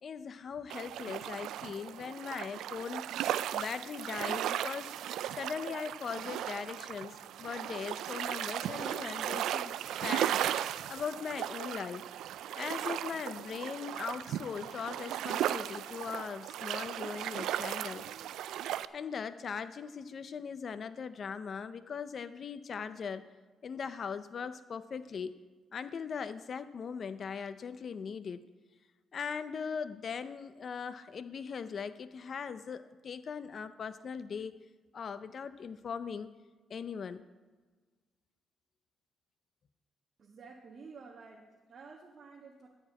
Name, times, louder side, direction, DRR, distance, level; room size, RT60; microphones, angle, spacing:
voice 1, 0.0-3.0 3.5-9.7 10.0-12.1 12.5-18.0 18.7-23.3 23.6-25.4 25.7-28.4 29.1-34.5 34.9-36.3 36.7-37.2, left 6 dB, 50° left, 12 dB, 0.5 m, -40 dB
sound 1, 0.7-18.9, right 11 dB, 80° right, 0.3 m, -36 dB
voice 2, 40.2-42.7, right 4 dB, 55° right, -1 dB, 1.6 m, -51 dB
14.0 x 4.8 x 8.8 m, 1.4 s
cardioid pair, 90°, 0 cm